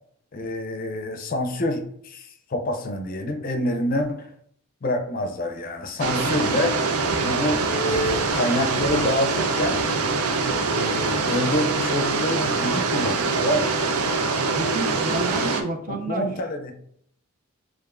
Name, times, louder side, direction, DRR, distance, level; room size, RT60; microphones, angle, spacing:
voice 1, 0.3-4.3 4.8-6.8 7.2-9.8 10.5-13.8 15.9-16.8, left 1 dB, 40° left, 6 dB, 0.5 m, -27 dB
sound 1, 6.0-15.6, right 4 dB, 90° right, 0.5 m, -24 dB
voice 2, 11.1-11.4 14.5-16.3, right 2 dB, 40° right, 6 dB, 0.4 m, -30 dB
6.8 x 2.5 x 2.4 m, 0.67 s
head